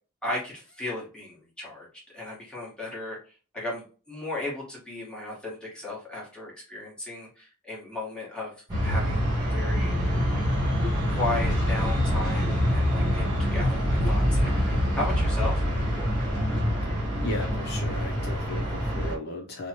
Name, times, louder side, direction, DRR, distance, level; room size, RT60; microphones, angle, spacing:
voice 1, 0.2-1.9 2.1-10.4 11.1-15.6, left 2 dB, 5° left, -6 dB, 1.2 m, -35 dB
sound 1, 8.7-19.2, equal, 20° right, 1.1 m, -25 dB
voice 2, 17.2-19.7, left 1 dB, 50° left, 0 dB, 0.6 m, -36 dB
3.1 x 2.1 x 2.8 m, 0.36 s
head